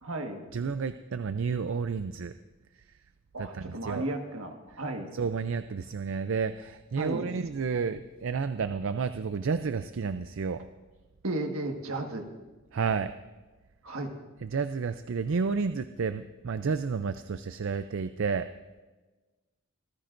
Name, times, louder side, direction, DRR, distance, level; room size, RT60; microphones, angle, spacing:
voice 1, 0.0-0.4 3.3-5.1 7.0-7.2 11.2-12.3 13.8-14.1, right 2 dB, 80° right, 4 dB, 1.6 m, -34 dB
voice 2, 0.5-2.3 3.4-4.0 5.1-10.6 12.7-13.1 14.4-18.5, right 5 dB, 65° right, 10 dB, 0.4 m, -31 dB
26.0 x 15.0 x 2.6 m, 1.2 s
head